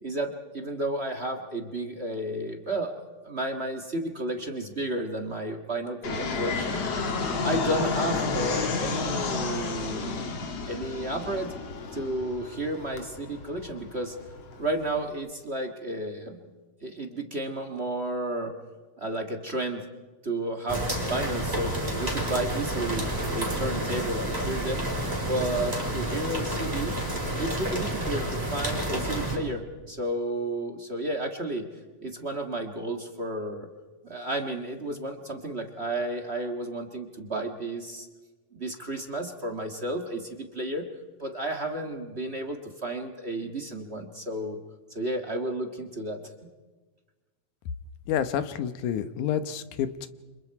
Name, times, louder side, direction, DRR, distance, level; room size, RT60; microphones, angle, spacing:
voice 1, 0.0-6.8 7.4-10.3 10.7-11.5 11.9-14.2 14.6-16.4 16.8-18.5 19.0-19.8 20.2-23.1 23.3-24.9 25.2-27.0 27.4-31.7 32.0-33.7 34.0-38.1 38.5-40.8 41.2-44.6 44.9-46.2, right 1 dB, 30° right, 3 dB, 1.3 m, -32 dB
Fixed-wing aircraft airplane, 6.0-15.1, left 4 dB, 55° left, 3.0 m, -31 dB
sound 1, 20.7-29.4, right 1 dB, 10° right, 4.9 m, -30 dB
voice 2, 48.1-50.1, left 9 dB, 90° left, 11 dB, 2.6 m, -29 dB
29.5 x 26.5 x 4.8 m, 1.3 s
omnidirectional pair, 3.4 m